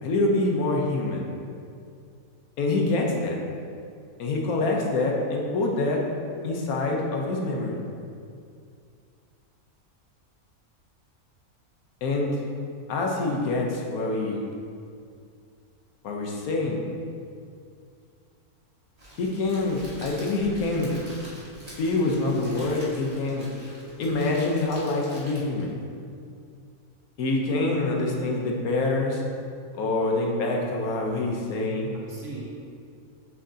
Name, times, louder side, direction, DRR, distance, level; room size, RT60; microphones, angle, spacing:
voice 1, 0.0-1.2 2.6-3.4 4.2-6.1 6.4-7.8 12.0-12.4 12.9-14.4 16.0-16.8 19.2-21.0 21.8-23.5 24.0-25.8 27.2-29.2 29.7-31.9, left 2 dB, 75° left, 0 dB, 1.3 m, -26 dB
Crackle, 19.0-25.7, equal, 25° right, 1.5 m, -45 dB
voice 2, 31.0-31.4 31.9-32.7, right 1 dB, 55° right, -5 dB, 1.5 m, -40 dB
6.9 x 6.0 x 2.8 m, 2.3 s
omnidirectional pair, 1.6 m